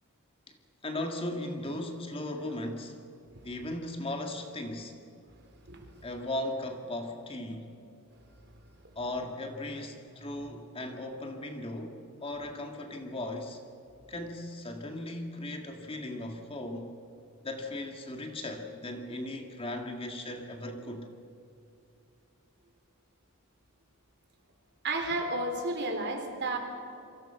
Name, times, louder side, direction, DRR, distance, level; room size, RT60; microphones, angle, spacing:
voice 1, 0.8-3.0 3.4-5.0 6.0-7.8 9.0-13.6 14.1-16.9 17.4-21.1, left 1 dB, 25° left, 4 dB, 1.9 m, -37 dB
voice 2, 24.8-26.6, right 2 dB, 50° right, 4 dB, 3.5 m, -32 dB
28.0 x 24.0 x 5.7 m, 2.6 s
head